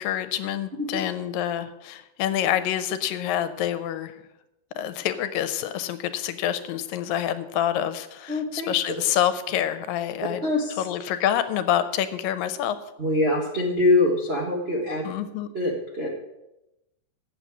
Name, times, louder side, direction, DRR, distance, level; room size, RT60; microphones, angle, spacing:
voice 1, 0.0-4.2 4.8-10.4 10.8-12.8 15.0-15.5, left 11 dB, 85° left, 11 dB, 2.5 m, -27 dB
voice 2, 8.3-8.7 10.4-10.8 13.0-15.0 15.5-16.1, left 2 dB, 80° right, -3 dB, 0.5 m, -24 dB
8.7 x 7.4 x 8.5 m, 0.91 s
omnidirectional pair, 4.0 m